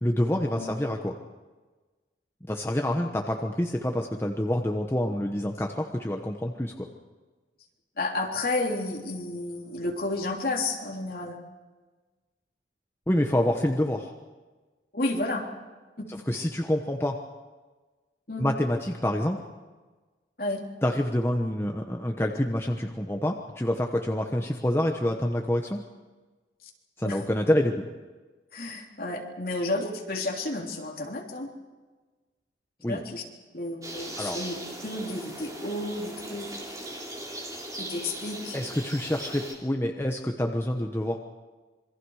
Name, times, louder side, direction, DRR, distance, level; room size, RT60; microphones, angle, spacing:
voice 1, 0.0-1.1 2.5-6.9 13.1-14.1 16.1-17.2 18.4-19.4 20.8-25.8 27.0-27.8 32.8-33.0 34.2-34.4 38.5-41.2, left 1 dB, 15° left, 2 dB, 1.1 m, -27 dB
voice 2, 8.0-11.4 14.9-15.4 16.0-16.1 18.3-18.5 20.4-20.6 27.0-27.2 28.5-31.5 32.9-33.2 33.5-34.6 34.8-36.5 37.7-38.6, left 2 dB, 55° left, 0 dB, 3.4 m, -31 dB
sound 1, 33.8-39.5, right 1 dB, 20° right, 3.6 m, -39 dB
27.0 x 23.0 x 4.9 m, 1.3 s
head